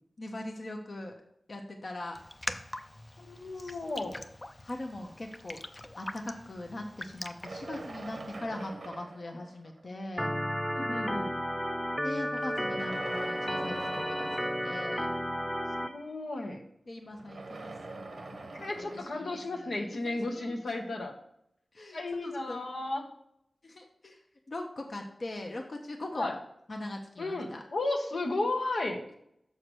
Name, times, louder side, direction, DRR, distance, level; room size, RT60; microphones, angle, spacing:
voice 1, 0.2-1.1 1.5-2.2 3.6-3.8 4.6-5.6 6.0-10.3 12.0-15.1 16.9-18.4 18.8-20.0 20.3-20.5 21.7-22.6 23.6-24.2 24.5-26.3 26.7-27.6, left 1 dB, 60° left, 2 dB, 0.9 m, -41 dB
Raindrop, 2.1-8.4, left 1 dB, 35° left, 0.5 m, -43 dB
voice 2, 3.2-4.1 10.7-11.3 15.8-16.6 18.5-21.1 21.9-23.1 26.1-26.4 27.2-29.0, left 2 dB, 85° left, 0 dB, 1.1 m, -34 dB
sound 1, 7.4-10.1 10.9-11.0 12.1-15.2 17.0-20.1, right 3 dB, 80° right, 0.9 m, -44 dB
Organ, 10.2-15.9, equal, 10° left, 0.8 m, -32 dB
6.6 x 4.8 x 6.2 m, 0.75 s
cardioid pair, 40°, 0 cm